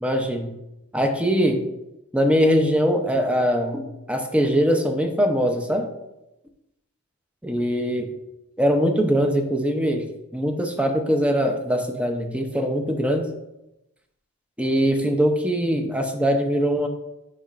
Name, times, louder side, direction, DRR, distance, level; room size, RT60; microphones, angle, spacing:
voice 1, 0.0-0.5 0.9-1.7 2.1-5.9 7.4-8.1 8.6-13.3 14.6-16.9, equal, 5° right, 4 dB, 0.7 m, -22 dB
8.7 x 5.5 x 2.5 m, 0.91 s
head